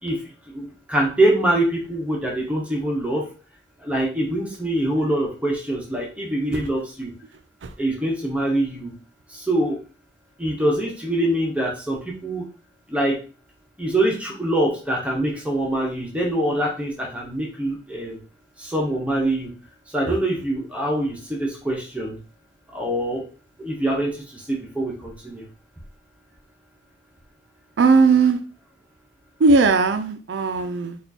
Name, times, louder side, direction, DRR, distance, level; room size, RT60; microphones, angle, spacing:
voice 1, 0.0-3.3 3.8-7.1 7.8-9.0 9.3-9.8 10.4-12.5 12.9-13.2 13.8-18.2 18.6-19.5 19.9-22.2 22.7-23.2 23.6-25.5, right 1 dB, 5° right, -2 dB, 0.7 m, -24 dB
voice 2, 27.8-28.4 29.4-31.0, right 4 dB, 75° right, 9 dB, 0.4 m, -18 dB
4.2 x 2.4 x 2.7 m, 0.37 s
head